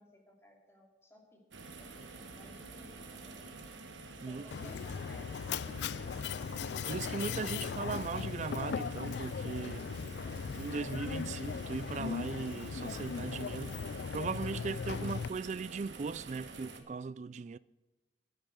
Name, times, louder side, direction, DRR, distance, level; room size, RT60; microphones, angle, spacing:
voice 1, 0.0-1.4 1.7-3.6 4.2-6.5 14.9-15.1, equal, 15° left, 2.6 m, -58 dB
sound 1, 1.5-16.8, right 3 dB, 85° right, 1.3 m, -49 dB
voice 2, 4.2-4.7 6.8-9.9 10.5-17.6, right 4 dB, 40° right, 0.3 m, -39 dB
Mechanisms, 4.5-15.3, left 6 dB, 70° left, 0.3 m, -38 dB
9.7 x 9.0 x 7.6 m
head